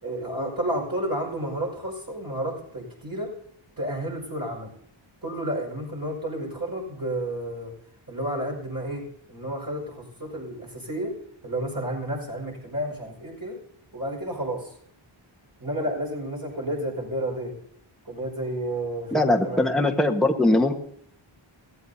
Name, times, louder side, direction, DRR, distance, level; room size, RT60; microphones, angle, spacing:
voice 1, 0.0-3.4 3.8-4.7 5.2-7.7 8.1-11.2 11.4-13.6 13.9-14.7 15.6-17.5 18.0-19.7, right 1 dB, 40° right, -2 dB, 5.4 m, -31 dB
voice 2, 19.1-20.8, left 2 dB, ahead, 1 dB, 1.4 m, -21 dB
21.5 x 15.0 x 2.8 m, 0.65 s
wide cardioid pair, 45°, 50 cm